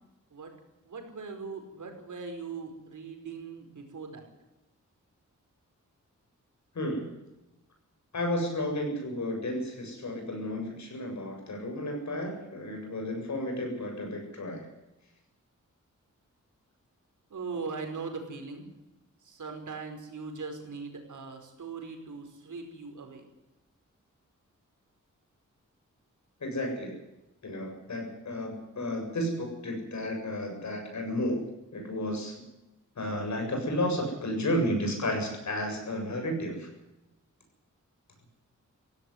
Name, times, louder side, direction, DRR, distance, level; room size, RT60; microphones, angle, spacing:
voice 1, 0.8-4.3 17.3-18.7 19.2-23.3, right 4 dB, 70° right, 4 dB, 5.0 m, -40 dB
voice 2, 6.7-7.1 8.1-14.7 26.4-26.9 27.4-31.4 31.7-32.4 33.0-36.7, left 1 dB, 65° left, 3 dB, 7.6 m, -32 dB
16.5 x 16.5 x 9.8 m, 0.96 s
wide cardioid pair, 145°, 31 cm